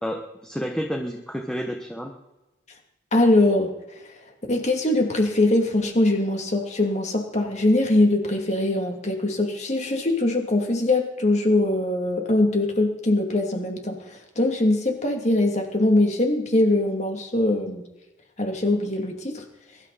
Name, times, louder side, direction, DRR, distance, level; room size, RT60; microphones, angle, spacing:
voice 1, 0.0-2.1, equal, 5° left, 2 dB, 1.3 m, -30 dB
voice 2, 3.1-3.7 4.0-4.2 4.5-17.8 18.4-19.4, left 2 dB, 35° left, 3 dB, 2.8 m, -22 dB
22.5 x 12.5 x 4.3 m, 1.0 s
head